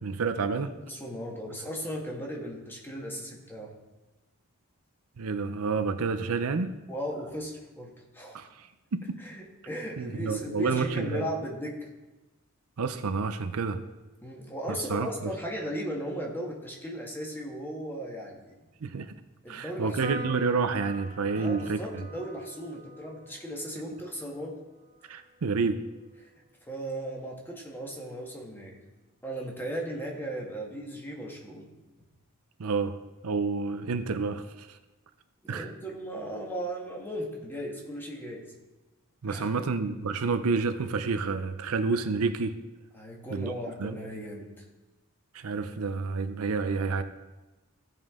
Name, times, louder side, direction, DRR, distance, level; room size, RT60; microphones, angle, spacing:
voice 1, 0.0-0.7 5.2-6.7 8.3-9.2 10.0-11.3 12.8-13.8 14.9-15.3 18.8-19.1 19.5-22.0 25.1-25.9 32.6-33.0 33.2-34.8 35.5-35.7 39.2-42.6 43.3-43.5 43.8-43.9 45.3-47.0, right 4 dB, 70° right, 9 dB, 0.6 m, -29 dB
voice 2, 0.9-3.7 6.9-8.4 9.2-11.9 14.2-18.5 19.4-20.1 21.2-24.6 26.2-26.3 26.7-28.8 29.2-31.7 35.4-38.5 39.3-39.5 42.9-44.5, equal, 10° left, -1 dB, 1.4 m, -37 dB
Piano, 20.0-26.7, right 2 dB, 35° right, 1.5 m, -45 dB
16.0 x 5.4 x 3.6 m, 1.1 s
head